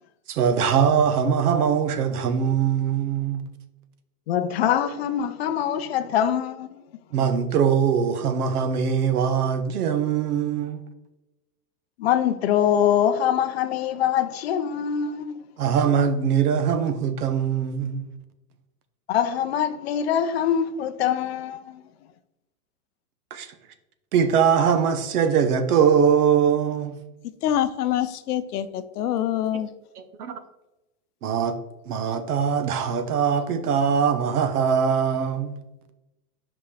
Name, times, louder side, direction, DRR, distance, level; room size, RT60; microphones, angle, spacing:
voice 1, 0.3-3.4 7.1-10.8 15.6-18.1 23.3-23.5 24.1-27.0 30.0-30.4 31.2-31.6 31.9-35.6, right 7 dB, 75° right, 1.0 m, -22 dB
voice 2, 4.3-6.8 12.0-15.3 19.1-21.8, left 9 dB, 45° left, 0.4 m, -23 dB
voice 3, 27.4-29.7, left 11 dB, 75° left, 0.7 m, -25 dB
5.5 x 5.2 x 3.3 m
supercardioid pair, 155°, 46 cm